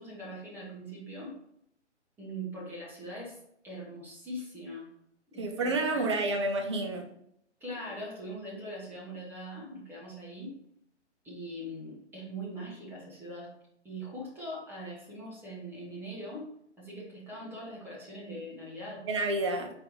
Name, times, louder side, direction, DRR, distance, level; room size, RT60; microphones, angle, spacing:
voice 1, 0.0-1.4 2.2-3.4 3.6-4.9 5.3-6.0 7.6-10.5 11.2-13.5 13.8-16.5 16.8-19.0, equal, 5° right, -5 dB, 0.9 m, -41 dB
voice 2, 5.4-7.1 19.1-19.7, right 2 dB, 25° right, 4 dB, 0.4 m, -29 dB
4.6 x 3.0 x 3.5 m, 0.74 s
figure-of-eight pair, 135°, 36 cm